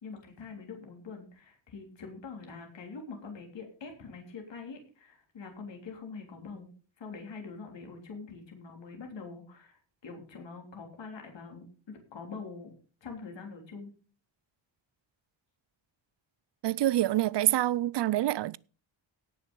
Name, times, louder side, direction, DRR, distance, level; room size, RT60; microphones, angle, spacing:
voice 1, 0.0-6.7 7.0-12.7 13.0-13.9, left 4 dB, 65° left, 3.5 m, -44 dB
voice 2, 16.6-18.6, right 14 dB, 60° right, 0.5 m, -26 dB
17.5 x 6.2 x 5.3 m
wide cardioid pair, 165°, 47 cm